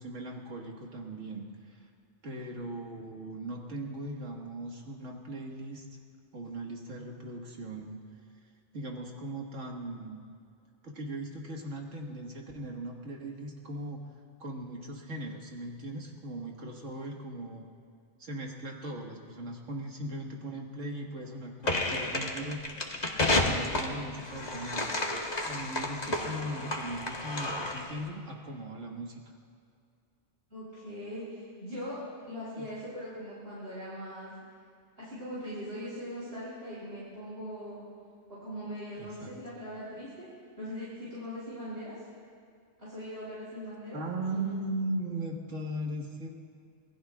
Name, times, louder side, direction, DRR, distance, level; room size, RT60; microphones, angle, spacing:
voice 1, 0.0-1.9 2.2-5.9 6.3-8.0 8.7-10.2 10.8-14.0 14.4-17.7 18.2-22.6 23.4-25.0 25.4-29.2 32.6-32.7 39.0-39.3 43.9-46.4, right 1 dB, 85° right, 0 dB, 2.1 m, -38 dB
sound 1, 21.6-28.0, left 2 dB, 35° left, 1.5 m, -31 dB
voice 2, 26.0-26.4 30.5-32.0 32.3-34.3 35.0-37.8 38.3-40.3 40.6-42.0 42.8-44.6, equal, 60° right, -10 dB, 4.8 m, -41 dB
26.0 x 19.0 x 2.4 m, 2.3 s
omnidirectional pair, 1.2 m